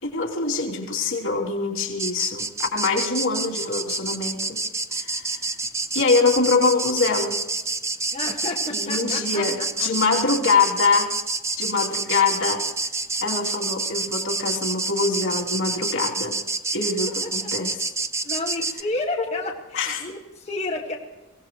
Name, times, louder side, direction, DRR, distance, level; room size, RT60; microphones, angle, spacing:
voice 1, 0.0-4.6 4.9-5.4 5.9-7.4 8.7-11.1 11.6-12.6 13.2-16.4 16.7-17.9 19.2-19.3 19.7-20.1, left 4 dB, 70° left, -2 dB, 3.0 m, -24 dB
sound 1, 2.0-18.8, right 3 dB, 15° right, 0.6 m, -28 dB
voice 2, 8.1-10.1 17.2-17.5 18.2-21.0, left 2 dB, 30° left, -1 dB, 1.7 m, -31 dB
23.5 x 17.5 x 3.1 m, 1.2 s
head